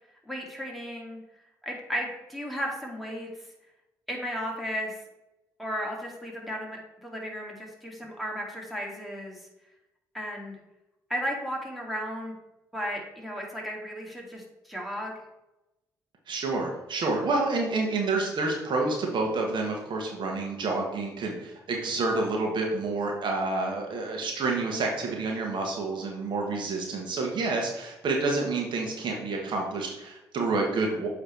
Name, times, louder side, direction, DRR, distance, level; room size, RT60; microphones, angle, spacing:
voice 1, 0.2-1.2 1.6-3.5 4.1-4.9 5.6-9.5 10.1-10.6 11.1-12.3 12.7-15.1, equal, ahead, -2 dB, 2.1 m, -34 dB
voice 2, 16.3-31.1, right 3 dB, 60° right, 0 dB, 1.3 m, -28 dB
8.0 x 3.3 x 4.4 m, 0.93 s
hypercardioid pair, 50°, 9 cm